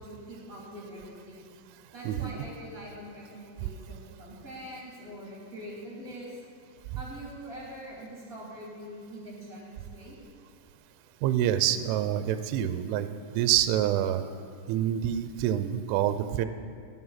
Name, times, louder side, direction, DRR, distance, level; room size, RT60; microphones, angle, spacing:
voice 1, 0.0-1.5 1.9-6.4 7.0-10.2, equal, 25° right, -5 dB, 2.1 m, -43 dB
voice 2, 2.0-2.4 11.2-14.2 14.7-16.5, right 11 dB, 85° right, 11 dB, 2.8 m, -27 dB
18.5 x 7.9 x 5.7 m, 2.2 s
omnidirectional pair, 5.9 m